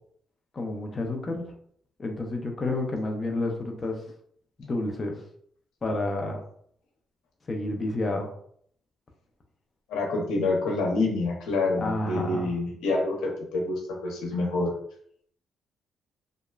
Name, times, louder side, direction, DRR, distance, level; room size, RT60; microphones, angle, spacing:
voice 1, 0.5-1.5 2.0-4.0 4.6-5.2 5.8-6.4 7.5-8.3 11.8-12.5, left 2 dB, 35° left, 2 dB, 0.5 m, -30 dB
voice 2, 9.9-14.7, left 2 dB, 90° left, -1 dB, 0.7 m, -27 dB
2.9 x 2.1 x 2.3 m, 0.65 s
cardioid pair, 90°, 0 cm